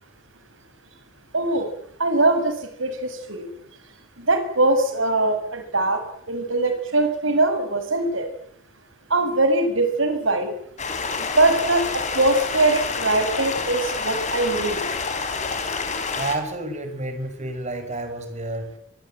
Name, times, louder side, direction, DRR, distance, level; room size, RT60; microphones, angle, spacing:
voice 1, 1.3-1.7 2.0-3.5 4.2-6.0 6.3-8.3 9.1-10.5 11.2-14.9, right 2 dB, 70° right, 8 dB, 6.5 m, -22 dB
Stream, 10.8-16.4, left 4 dB, 35° left, 5.3 m, -28 dB
voice 2, 16.2-18.8, right 2 dB, 35° right, 8 dB, 6.3 m, -30 dB
24.5 x 24.5 x 9.2 m, 0.69 s
head